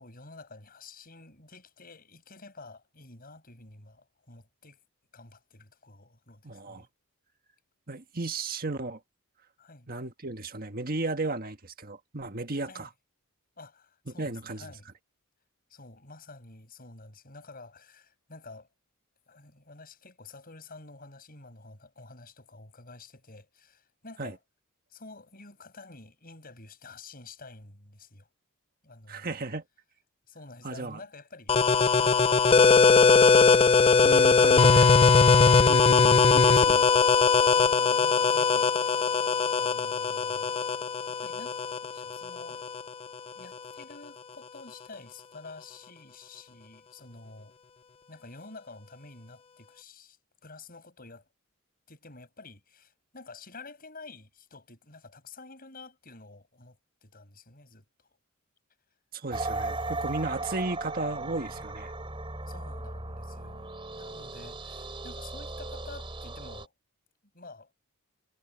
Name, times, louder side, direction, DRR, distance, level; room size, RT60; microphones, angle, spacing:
voice 1, 0.0-4.8 5.1-6.9 9.6-9.9 12.7-12.9 13.6-14.9 15.7-18.7 19.3-24.4 24.9-28.3 28.8-29.4 30.3-31.5 32.0-32.4 34.2-34.7 35.4-35.9 37.5-39.3 39.6-40.6 41.0-41.6 41.8-42.6 43.3-47.6 48.1-51.3 51.9-58.2 61.6-61.7 62.4-66.7 67.3-67.7, left 3 dB, 40° left, 7.7 m, -49 dB
voice 2, 6.4-6.9 7.9-9.0 9.9-12.9 14.1-14.7 24.2-24.3 29.1-29.6 30.6-31.0 34.0-34.9 35.5-36.9 59.1-61.9, right 2 dB, 40° right, 1.6 m, -34 dB
sound 1, 31.5-42.9, left 5 dB, 25° left, 0.5 m, -20 dB
sound 2, 59.3-66.6, right 2 dB, 25° right, 5.4 m, -37 dB
head